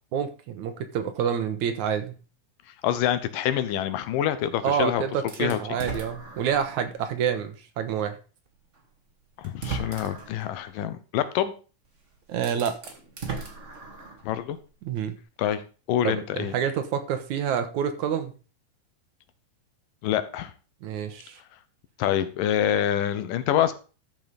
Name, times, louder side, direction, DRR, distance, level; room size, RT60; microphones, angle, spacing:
voice 1, 0.1-2.2 4.6-8.2 12.3-12.7 14.8-15.2 16.0-18.3 20.8-21.4, right 8 dB, 70° right, 9 dB, 2.4 m, -28 dB
voice 2, 2.8-5.0 5.4-5.6 9.4-11.5 14.2-14.6 15.4-15.6 15.9-16.6 20.0-20.5 22.0-23.7, left 10 dB, 85° left, 12 dB, 2.6 m, -26 dB
sound 1, 5.3-6.9 7.4-7.5 8.8-8.9 9.4-10.4 11.8-11.9 12.3-14.3, right 4 dB, 25° right, 1.8 m, -37 dB
13.0 x 5.7 x 5.2 m, 0.36 s
omnidirectional pair, 3.8 m